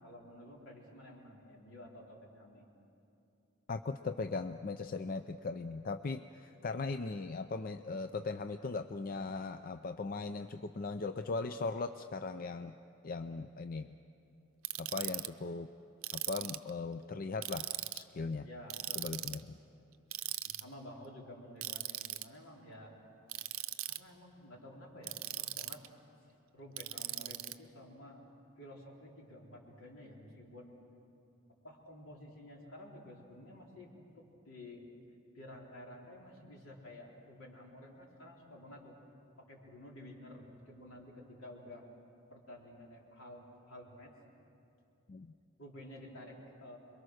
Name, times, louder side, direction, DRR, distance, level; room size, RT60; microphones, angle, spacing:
voice 1, 0.0-2.7 18.4-19.2 20.4-22.9 23.9-25.8 26.5-28.2 28.6-30.7 31.6-34.8 35.3-38.9 39.4-41.8 42.3-44.1 45.6-46.8, left 1 dB, 75° left, -2 dB, 4.0 m, -52 dB
voice 2, 3.7-12.7 13.0-14.0 14.8-15.7 16.1-18.5 19.0-19.6 45.1-45.3, left 3 dB, 40° left, 8 dB, 0.5 m, -39 dB
Ratchet pawl, 14.6-15.3 16.0-16.7 17.4-18.0 18.7-19.4 20.1-20.6 21.6-22.2 23.3-24.0 25.0-25.9 26.8-27.5, right 15 dB, 80° right, 0.7 m, -39 dB
27.5 x 22.5 x 6.5 m, 2.7 s
head